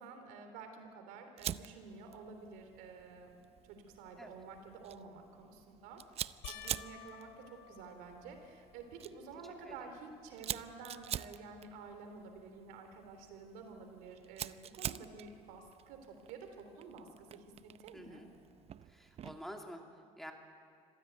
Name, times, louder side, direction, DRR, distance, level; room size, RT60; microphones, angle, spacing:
voice 1, 0.0-3.4 3.6-18.2, right 4 dB, 80° right, 6 dB, 3.5 m, -51 dB
Fire, 1.4-19.5, right 10 dB, 45° right, 0.6 m, -47 dB
sound 1, 6.4-9.0 9.6-10.2 10.6-10.7 13.9-14.0, left 12 dB, 85° left, 1.0 m, -54 dB
voice 2, 17.9-18.3 18.9-20.3, equal, ahead, 3 dB, 2.6 m, -49 dB
25.0 x 16.0 x 9.2 m, 2.4 s
supercardioid pair, 90°, 15 cm